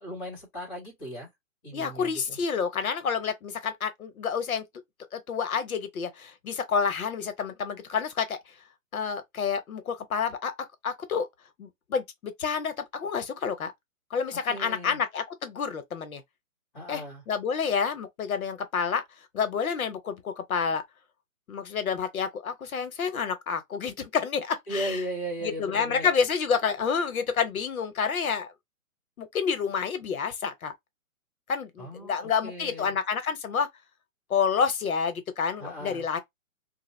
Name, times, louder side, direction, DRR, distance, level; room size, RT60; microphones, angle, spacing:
voice 1, 0.0-1.3 1.6-2.4 14.5-15.0 16.7-17.2 24.7-26.1 31.8-33.0 35.6-36.0, right 1 dB, 15° left, 1.4 m, -36 dB
voice 2, 1.7-4.6 5.1-8.4 8.9-10.5 10.8-11.3 11.6-13.7 14.1-16.2 16.9-19.0 19.3-20.8 21.5-25.0 25.4-28.5 29.2-30.7 31.5-33.7 34.3-36.2, left 6 dB, 80° left, 1.0 m, -29 dB
2.9 x 2.3 x 3.1 m
hypercardioid pair, 180°, 42 cm